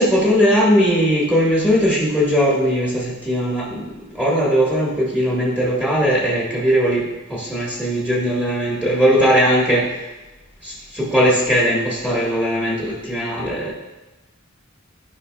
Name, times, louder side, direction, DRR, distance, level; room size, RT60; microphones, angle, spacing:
voice 1, 0.0-10.0 10.6-13.7, equal, 5° right, -5 dB, 1.3 m, -19 dB
11.0 x 5.3 x 2.3 m, 1.1 s
head